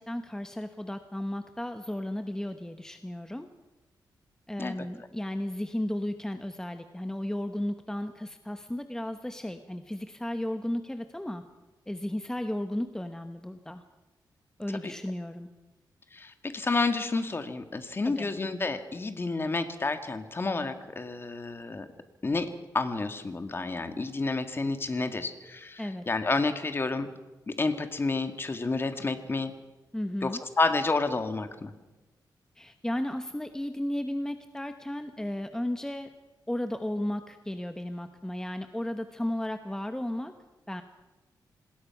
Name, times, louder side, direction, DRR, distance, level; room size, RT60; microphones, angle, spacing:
voice 1, 0.0-3.5 4.5-11.4 11.9-13.8 14.6-15.5 18.0-18.3 25.8-26.0 29.9-30.4 32.6-36.1 36.5-40.3 40.7-40.8, left 1 dB, 5° left, 8 dB, 1.1 m, -34 dB
voice 2, 16.1-21.9 22.2-27.1 27.5-29.5 30.2-31.7, left 3 dB, 30° left, 8 dB, 1.9 m, -30 dB
27.0 x 20.0 x 6.0 m, 1.1 s
wide cardioid pair, 115°, 8 cm